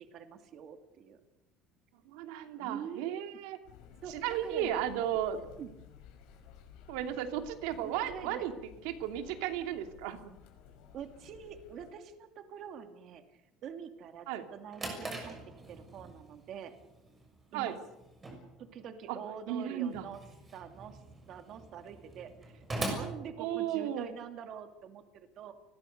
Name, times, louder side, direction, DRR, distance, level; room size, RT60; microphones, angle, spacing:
voice 1, 0.1-1.2 2.6-3.1 4.0-4.7 5.4-5.7 7.8-8.5 10.9-15.4 15.7-16.7 17.5-17.7 18.7-20.2 20.5-21.0 21.3-25.5, right 7 dB, 40° right, 7 dB, 2.5 m, -45 dB
voice 2, 2.0-3.6 4.1-5.4 6.9-8.5 8.8-10.3 14.3-14.4 17.5-17.8 19.1-19.2 19.5-20.1 23.4-24.1, right 10 dB, 85° right, 7 dB, 2.9 m, -34 dB
sound 1, 3.6-11.9, left 8 dB, 65° left, 5.9 m, -55 dB
Drawer open or close, 14.4-24.1, right 2 dB, 15° right, 6.6 m, -43 dB
29.5 x 21.0 x 6.7 m, 0.97 s
cardioid pair, 165°, 0 cm